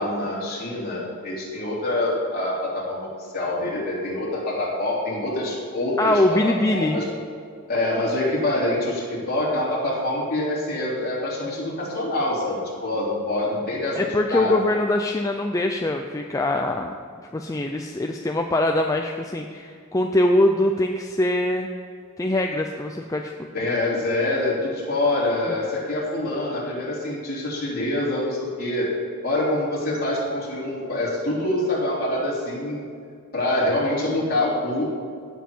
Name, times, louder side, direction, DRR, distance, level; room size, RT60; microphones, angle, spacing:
voice 1, 0.0-3.1 3.3-6.4 6.7-7.0 7.7-14.0 14.3-14.5 23.5-28.9 29.2-32.8 33.3-34.9, left 1 dB, 40° left, -6 dB, 3.2 m, -25 dB
voice 2, 6.0-7.0 13.9-16.9 17.3-21.7 22.2-23.3, left 1 dB, 15° left, 3 dB, 0.4 m, -23 dB
16.5 x 7.2 x 4.4 m, 2.2 s
head